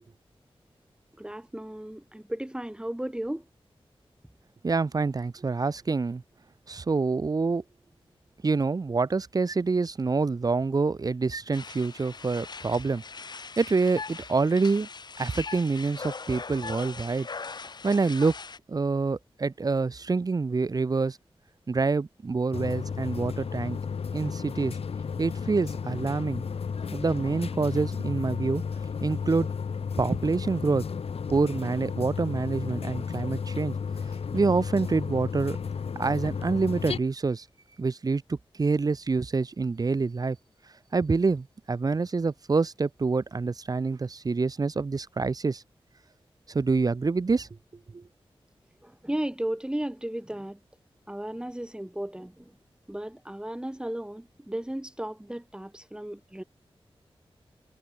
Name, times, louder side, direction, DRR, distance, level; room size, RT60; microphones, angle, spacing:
voice 1, 1.2-3.4 48.8-50.6 51.1-52.4 52.9-56.4, right 1 dB, 10° right, 1.5 m, -35 dB
voice 2, 4.6-6.2 6.7-7.6 8.4-13.0 13.6-14.9 15.2-17.3 17.8-18.3 18.7-21.2 21.7-23.8 24.1-24.8 25.2-26.4 26.9-28.6 29.0-29.5 30.0-30.8 31.3-33.7 34.3-35.6 36.0-37.4 37.8-40.4 40.9-45.6 46.5-47.5 47.9-48.0, right 4 dB, 40° right, 0.5 m, -26 dB
sound 1, 11.5-18.6, left 4 dB, 45° left, 0.5 m, -40 dB
sound 2, 22.5-37.0, left 6 dB, 85° left, 1.1 m, -33 dB
wide cardioid pair, 90°, 10 cm